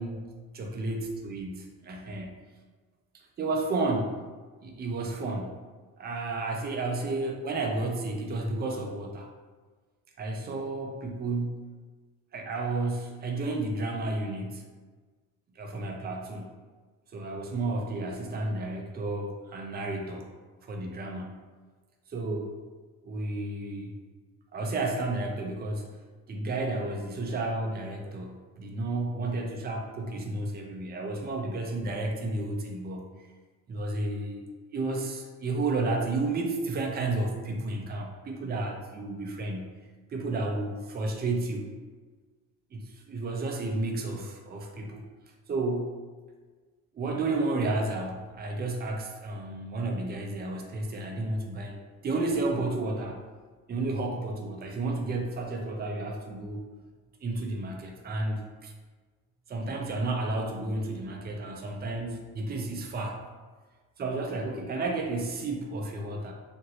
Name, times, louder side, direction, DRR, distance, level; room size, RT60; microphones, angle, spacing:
voice 1, 0.0-2.4 3.4-4.2 4.6-5.6 6.0-9.3 10.2-11.6 12.3-14.7 15.6-16.5 17.1-20.3 20.7-21.4 22.1-22.5 23.0-24.0 24.5-25.9 26.3-33.1 33.7-34.4 34.7-39.8 40.1-41.7 42.7-45.0 45.5-46.0 46.9-51.7 52.0-53.2 53.7-56.6 57.2-58.7 59.5-63.2 64.0-66.3, right 2 dB, 30° right, 2 dB, 0.5 m, -32 dB
2.9 x 2.5 x 2.8 m, 1.4 s
cardioid pair, 90°, 30 cm